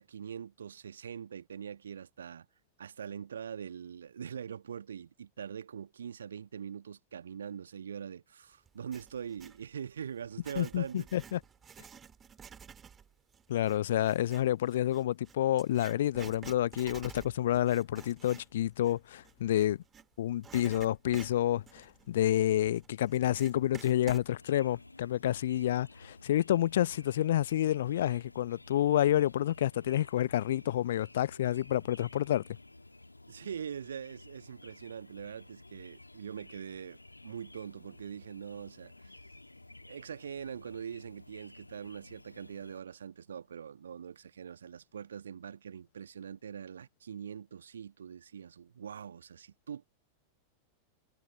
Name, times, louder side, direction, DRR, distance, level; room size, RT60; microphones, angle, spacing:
voice 1, 0.0-2.5 2.8-11.1 33.3-37.0 37.2-39.1 39.8-49.9, right 8 dB, 70° right, 1.6 m, -43 dB
Writing, 8.7-9.6 10.2-20.1 20.4-24.3, right 7 dB, 20° right, 2.9 m, -51 dB
voice 2, 10.6-11.4 13.5-19.8 20.2-32.4, left 12 dB, 60° left, 0.8 m, -29 dB
sound 1, 24.4-42.8, left 2 dB, 85° left, 1.8 m, -54 dB
figure-of-eight pair, 90°, 0 cm